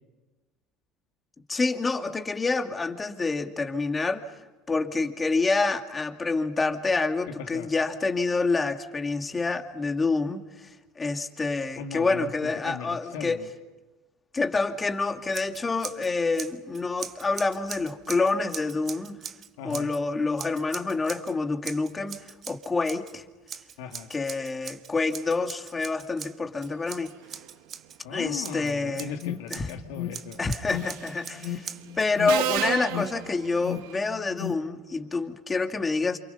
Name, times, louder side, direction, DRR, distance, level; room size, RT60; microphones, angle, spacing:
voice 1, 1.5-4.2 4.7-10.7 11.0-13.4 14.3-19.2 19.6-23.2 24.1-27.1 28.1-29.1 29.5-29.7 30.4-36.2, left 3 dB, 20° left, 5 dB, 2.3 m, -27 dB
voice 2, 7.3-7.7 11.8-13.5 19.6-19.9 23.8-24.1 28.0-30.4, left 7 dB, 85° left, 5 dB, 2.2 m, -38 dB
Scissors, 15.3-16.1 16.3-20.0 20.4-21.3 21.6-23.1 23.5-28.0 28.4-29.7 30.1-32.1, right 8 dB, 40° right, 1.4 m, -41 dB
Alarm, 28.9-34.8, left 11 dB, 65° left, 1.6 m, -37 dB
Subway metro underground, 30.8-31.1 32.3-34.0, right 13 dB, 80° right, 1.1 m, -31 dB
29.0 x 27.0 x 5.6 m, 1.2 s
supercardioid pair, 110°, 0 cm